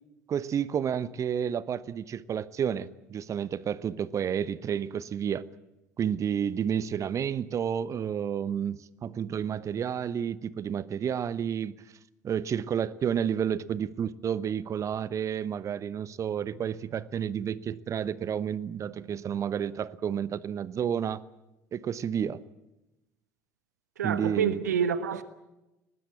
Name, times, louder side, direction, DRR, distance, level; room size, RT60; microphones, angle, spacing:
voice 1, 0.3-5.4 6.0-11.7 12.2-21.2 21.7-22.4 24.0-24.6, right 8 dB, 35° right, 0.9 m, -30 dB
voice 2, 24.0-25.2, right 7 dB, 75° right, 1.3 m, -27 dB
23.0 x 19.5 x 8.5 m
figure-of-eight pair, 65°, 9 cm